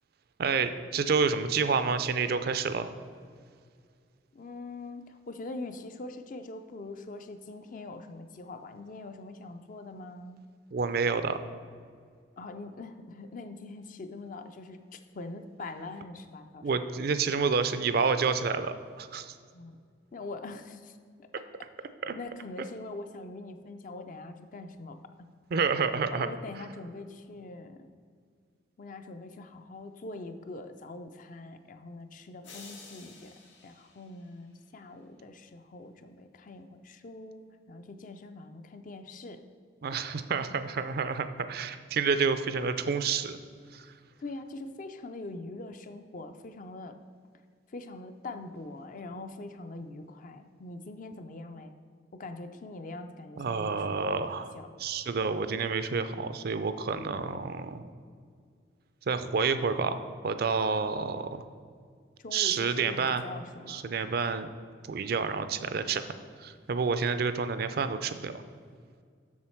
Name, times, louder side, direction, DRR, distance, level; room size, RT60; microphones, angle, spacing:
voice 1, 0.4-2.9 10.7-11.4 16.6-19.4 22.0-22.2 25.5-26.3 39.8-43.4 43.7-43.9 53.4-54.5 54.8-57.8 59.1-61.4 62.3-63.2 63.7-64.5 64.9-66.1 66.4-68.3, right 5 dB, 55° right, 11 dB, 0.4 m, -29 dB
voice 2, 4.3-10.5 12.4-16.8 19.5-19.8 20.1-21.3 22.1-25.0 26.1-27.9 28.8-33.3 33.6-39.4 44.2-47.0 47.7-51.8 52.1-54.2 54.5-54.7 62.2-63.9, left 2 dB, 45° left, 8 dB, 0.5 m, -43 dB
sound 1, 32.4-34.8, left 4 dB, 90° left, 1.4 m, -51 dB
7.4 x 6.3 x 4.4 m, 2.1 s
head